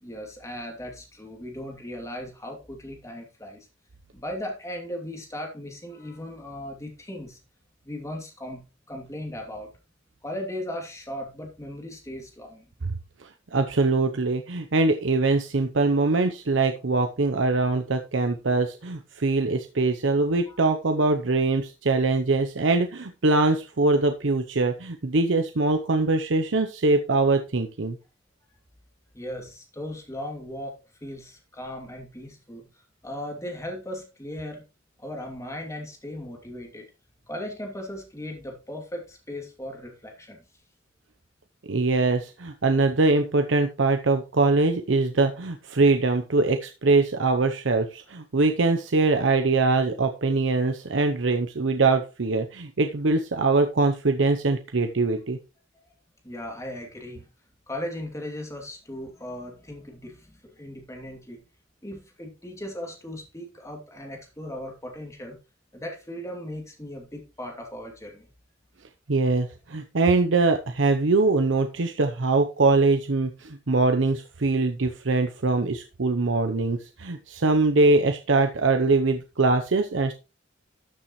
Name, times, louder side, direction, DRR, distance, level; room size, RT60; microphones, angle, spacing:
voice 1, 0.0-3.7 4.1-7.4 7.8-8.6 8.9-9.7 10.2-12.7 20.5-20.6 29.1-30.7 31.0-32.6 33.0-34.6 35.0-36.9 37.2-40.4 55.7-55.8 56.2-57.3 57.7-61.4 61.8-65.4 65.7-68.3, left 1 dB, 15° left, 2 dB, 2.6 m, -37 dB
voice 2, 13.2-28.0 41.7-55.4 69.1-80.1, right 3 dB, 75° right, 6 dB, 0.8 m, -23 dB
13.0 x 7.0 x 3.1 m, 0.29 s
head